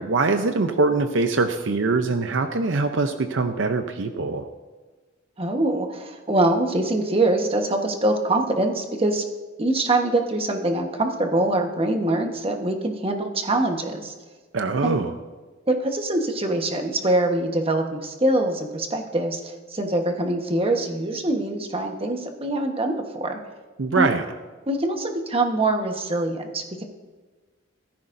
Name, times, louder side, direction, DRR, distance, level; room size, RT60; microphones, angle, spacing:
voice 1, 0.0-4.5 14.5-15.1 23.8-24.2, right 3 dB, 65° right, 7 dB, 0.6 m, -23 dB
voice 2, 5.4-9.2 9.6-14.1 14.8-15.0 15.7-23.4 24.0-24.1 24.7-26.8, right 2 dB, 30° right, 4 dB, 1.2 m, -24 dB
15.5 x 13.5 x 2.6 m, 1.3 s
head